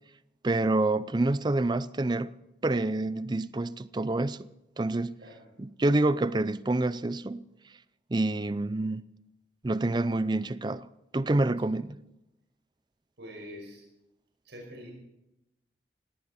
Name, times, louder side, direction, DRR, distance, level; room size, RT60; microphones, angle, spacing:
voice 1, 0.4-2.3 2.6-4.5 4.8-5.2 5.6-7.4 8.1-9.0 9.6-10.9 11.1-12.0, right 2 dB, 25° right, 0.5 m, -27 dB
voice 2, 13.2-13.9 14.4-14.9, equal, 80° right, 5.4 m, -45 dB
18.5 x 17.5 x 4.3 m
head